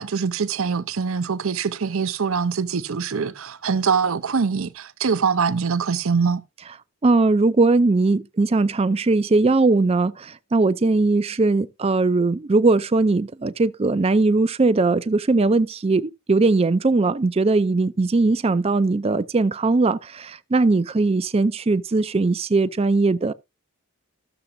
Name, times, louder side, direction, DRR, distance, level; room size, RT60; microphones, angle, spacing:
voice 1, 0.0-6.4, right 5 dB, 70° right, 0.6 m, -23 dB
voice 2, 7.0-23.3, right 3 dB, 25° right, 0.4 m, -20 dB
14.0 x 6.9 x 2.6 m
head